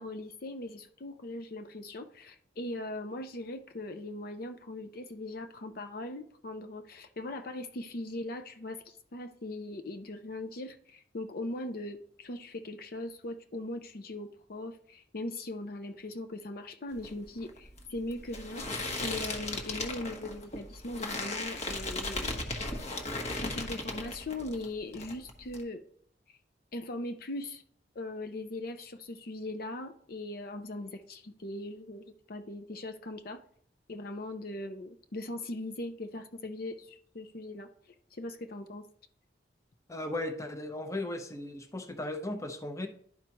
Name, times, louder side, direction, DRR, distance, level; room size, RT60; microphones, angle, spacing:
voice 1, 0.0-22.8 23.4-25.8 26.7-27.6 27.9-33.4 33.9-37.7 38.1-38.9, left 1 dB, 55° left, 0.6 m, -40 dB
sound 1, 16.9-24.7 24.9-25.6, left 2 dB, 40° left, 1.1 m, -37 dB
voice 2, 39.9-42.9, left 1 dB, 15° left, 0.7 m, -36 dB
11.5 x 4.8 x 2.9 m
head